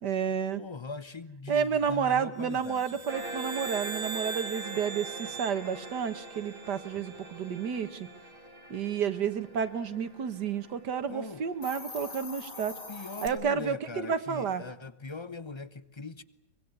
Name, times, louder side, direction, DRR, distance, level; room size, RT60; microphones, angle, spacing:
voice 1, 0.0-0.6 1.5-8.1 8.7-12.8 13.2-14.6, right 7 dB, 70° right, 1.9 m, -31 dB
voice 2, 0.6-3.0 11.1-11.4 12.9-16.2, left 3 dB, 25° left, 0.7 m, -41 dB
sound 1, 2.5-7.0, right 5 dB, 90° right, 2.5 m, -41 dB
sound 2, 3.1-12.1, right 1 dB, 30° right, 2.6 m, -44 dB
Hiss, 11.5-13.3, left 4 dB, 50° left, 2.9 m, -42 dB
24.5 x 21.0 x 9.7 m
omnidirectional pair, 1.8 m